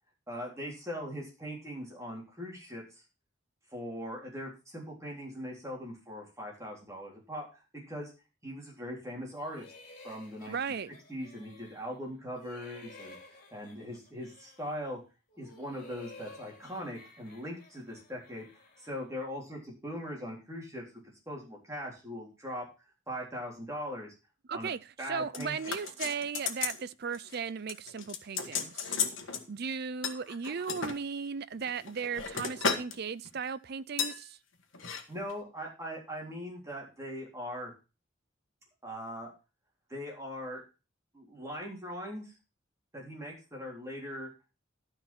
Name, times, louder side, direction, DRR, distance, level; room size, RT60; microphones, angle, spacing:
voice 1, 0.3-2.8 3.7-8.1 8.4-9.7 10.0-10.6 11.1-15.0 15.4-18.5 18.8-20.9 21.3-22.7 23.1-24.1 24.5-24.7 25.0-25.6 35.1-37.7 38.8-39.3 39.9-40.6 41.1-42.3 42.9-44.3, equal, 15° right, 3.7 m, -40 dB
sound 1, 9.3-12.0 12.3-14.9 15.3-19.1, left 2 dB, 45° left, 3.4 m, -54 dB
voice 2, 10.5-10.9 24.5-24.8 25.1-29.0 29.5-34.4, right 6 dB, 50° right, 0.5 m, -36 dB
sound 2, 25.3-26.8 27.1-27.4 27.7-29.4 30.0-31.0 31.6-33.0 33.2-33.5 34.0-34.2 34.7-35.0 35.3-35.4, left 5 dB, 70° left, 1.6 m, -34 dB
12.5 x 5.3 x 5.9 m
head